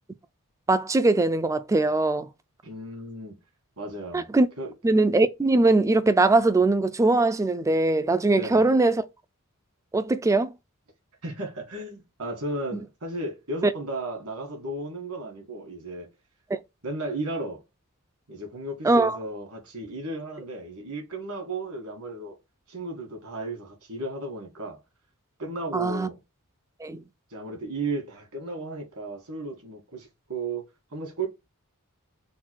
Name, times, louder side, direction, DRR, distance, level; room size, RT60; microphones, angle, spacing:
voice 1, 0.7-2.3 4.1-4.5 4.8-9.0 9.9-10.5 18.8-19.2 25.7-26.1 26.8-27.0, right 2 dB, 15° right, 0.3 m, -21 dB
voice 2, 2.6-3.4 3.8-4.3 4.6-4.7 8.3-8.7 11.2-16.1 16.8-17.6 18.3-22.4 22.7-24.8 25.4-26.2 27.3-31.3, right 2 dB, 75° right, 1.7 m, -34 dB
3.9 x 2.3 x 4.5 m
head